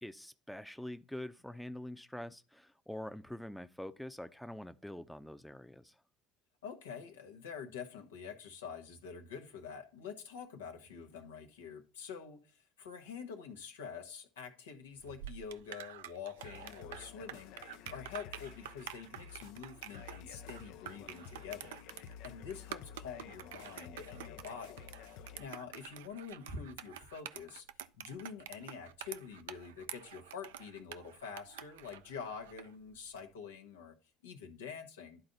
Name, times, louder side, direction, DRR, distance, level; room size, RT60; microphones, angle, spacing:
voice 1, 0.0-5.9, left 1 dB, 5° left, 0.6 m, -45 dB
voice 2, 6.6-24.8 25.1-27.7 28.0-34.0 34.2-35.2, left 6 dB, 90° left, 1.0 m, -46 dB
sound 1, 15.0-32.7, right 11 dB, 85° right, 0.4 m, -48 dB
sound 2, 16.4-25.4, left 8 dB, 70° left, 0.5 m, -52 dB
11.0 x 3.9 x 3.9 m
hypercardioid pair, 70°, 0 cm